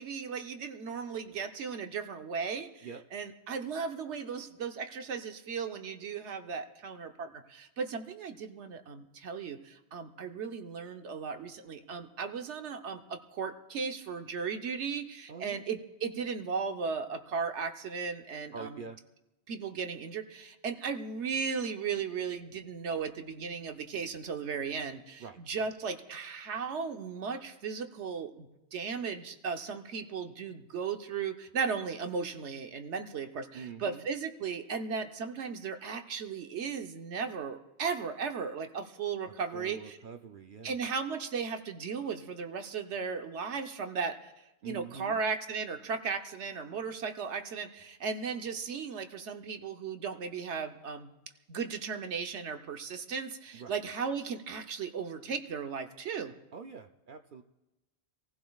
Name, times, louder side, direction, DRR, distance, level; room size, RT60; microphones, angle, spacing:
voice 1, 0.0-2.9 3.1-18.8 19.5-40.0 40.6-51.1 51.5-56.3, right 5 dB, 80° right, 6 dB, 1.2 m, -36 dB
voice 2, 15.3-15.6 18.5-19.0 25.2-25.7 33.5-34.1 39.2-40.8 44.6-45.2 53.5-53.8 56.5-57.4, right 5 dB, 55° right, 5 dB, 0.7 m, -45 dB
26.0 x 15.5 x 2.4 m, 0.98 s
omnidirectional pair, 1.1 m